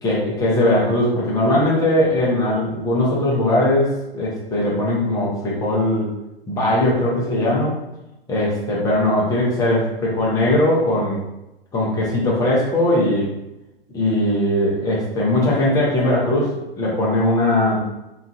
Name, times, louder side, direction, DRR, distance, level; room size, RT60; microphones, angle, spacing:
voice 1, 0.0-6.1 6.5-7.7 8.3-11.2 11.7-13.3 13.9-17.8, left 1 dB, 10° left, -5 dB, 0.7 m, -19 dB
3.0 x 2.4 x 2.5 m, 0.94 s
hypercardioid pair, 120°, 31 cm